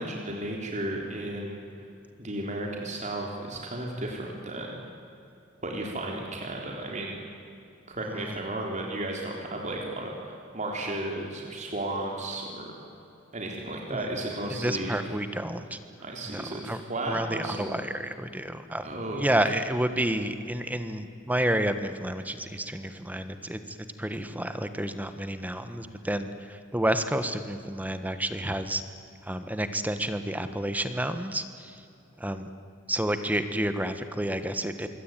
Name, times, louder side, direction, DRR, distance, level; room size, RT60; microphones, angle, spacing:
voice 1, 0.0-1.6 2.2-4.8 5.6-7.2 7.9-12.7 13.3-15.0 16.0-17.7 18.8-19.3, right 1 dB, 40° right, 0 dB, 3.6 m, -34 dB
voice 2, 14.6-15.8 16.3-16.8 17.1-18.9 19.1-28.8 29.2-31.8 32.2-32.5 32.9-34.9, right 1 dB, 10° right, 9 dB, 1.4 m, -30 dB
26.5 x 22.5 x 9.3 m, 2.7 s
head